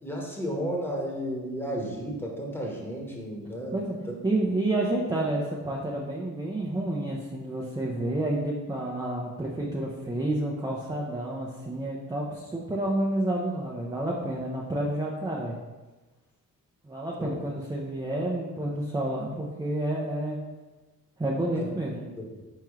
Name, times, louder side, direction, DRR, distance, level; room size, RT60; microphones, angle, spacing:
voice 1, 0.0-4.1 17.2-17.3 21.6-21.7 21.9-22.3, equal, 5° left, -2 dB, 1.1 m, -33 dB
voice 2, 4.2-15.6 16.8-20.4 21.2-21.9, right 1 dB, 10° right, -2 dB, 0.6 m, -29 dB
4.4 x 3.7 x 3.1 m, 1.2 s
cardioid pair, 70°, 37 cm